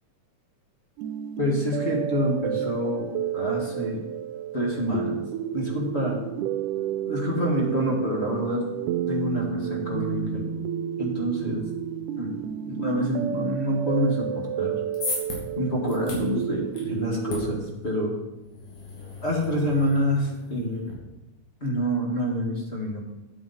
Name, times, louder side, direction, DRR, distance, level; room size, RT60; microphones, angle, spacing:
sound 1, 1.0-17.6, right 10 dB, 85° right, 2.1 m, -31 dB
voice 1, 1.4-3.1 3.3-4.0 4.5-5.2 5.5-6.2 7.0-8.6 9.1-10.5 11.0-11.7 12.1-12.4 12.7-14.8 15.5-18.1 19.2-20.8 21.6-23.0, equal, 25° left, -2 dB, 1.5 m, -27 dB
sound 2, 14.6-20.9, left 3 dB, 80° left, 4.1 m, -38 dB
10.0 x 8.5 x 4.2 m, 1.0 s
omnidirectional pair, 3.6 m